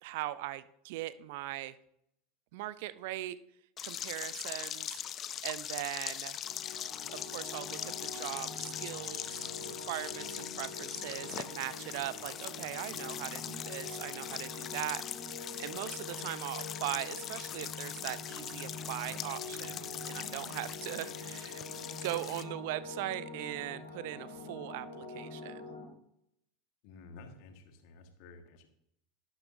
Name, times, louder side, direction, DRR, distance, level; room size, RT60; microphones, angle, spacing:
voice 1, 0.0-1.8 2.5-3.4 3.8-5.0 5.4-6.4 7.1-21.6 21.9-25.6, right 16 dB, 60° right, 16 dB, 0.5 m, -40 dB
sound 1, 3.8-22.4, left 10 dB, 40° left, 0.5 m, -41 dB
sound 2, 6.4-25.8, left 3 dB, 75° left, 1.8 m, -45 dB
voice 2, 26.8-28.7, left 3 dB, 55° left, 6 dB, 1.5 m, -52 dB
11.5 x 8.8 x 2.6 m, 0.74 s
figure-of-eight pair, 80°, 0 cm